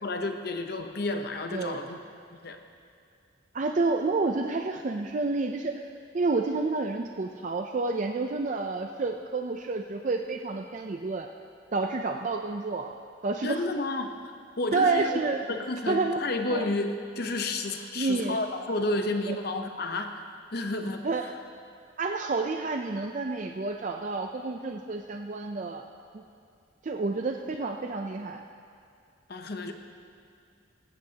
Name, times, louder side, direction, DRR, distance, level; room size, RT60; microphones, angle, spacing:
voice 1, 0.0-2.0 2.3-2.6 13.4-14.1 14.6-15.2 15.5-20.2 20.5-21.3 29.3-29.7, left 2 dB, 55° left, 5 dB, 0.8 m, -31 dB
voice 2, 3.5-5.9 6.1-11.3 11.7-12.9 13.2-13.6 14.7-15.4 15.9-16.2 16.5-16.7 18.0-18.4 19.3-19.4 21.0-21.2 22.0-25.8 26.1-26.2 26.8-28.4, right 3 dB, 40° right, 4 dB, 0.4 m, -29 dB
18.0 x 14.0 x 2.8 m, 2.4 s
head